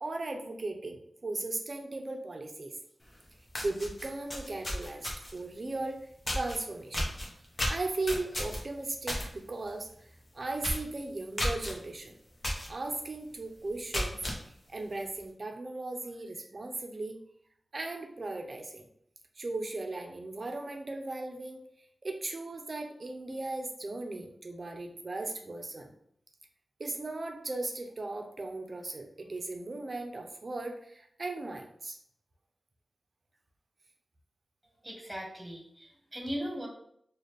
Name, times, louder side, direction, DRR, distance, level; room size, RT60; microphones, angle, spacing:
voice 1, 0.0-2.7 3.6-6.0 6.3-7.1 7.7-10.1 10.3-12.1 12.7-17.2 17.7-18.9 19.4-21.6 22.0-25.9 26.8-32.0, right 2 dB, 50° right, 4 dB, 0.6 m, -37 dB
sound 1, 3.1-3.2 3.5-5.4 6.3-6.6 6.9-9.3 9.6-9.9 10.2-10.3 10.6-10.9 11.4-11.7 12.4-12.7 13.1-13.2 13.7-14.4, equal, 35° left, 1.1 m, -33 dB
sound 2, 7.4-10.1, left 1 dB, 85° left, 0.9 m, -51 dB
voice 2, 34.8-36.7, equal, 15° right, -1 dB, 1.4 m, -38 dB
4.0 x 2.4 x 3.3 m, 0.69 s
cardioid pair, 55°, 0 cm